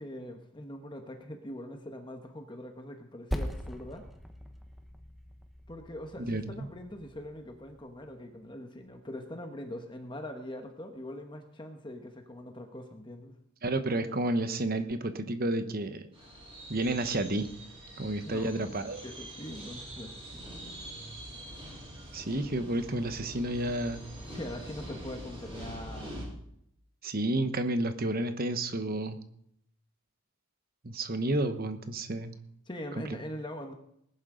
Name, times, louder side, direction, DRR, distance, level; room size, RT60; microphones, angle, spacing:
voice 1, 0.0-4.0 5.7-13.4 18.2-18.6 19.0-20.8 24.3-26.2 32.7-33.7, left 1 dB, 20° left, 4 dB, 1.2 m, -42 dB
Percussion, 3.3-8.1, equal, ahead, 1.1 m, -41 dB
voice 2, 6.3-6.7 13.6-16.1 16.7-17.5 18.0-19.0 22.1-24.0 27.0-29.2 30.8-32.3 33.0-33.2, right 1 dB, 40° right, 9 dB, 1.1 m, -31 dB
sound 1, 16.1-26.2, equal, 25° right, 6.3 m, -44 dB
19.5 x 11.0 x 3.9 m, 0.73 s
head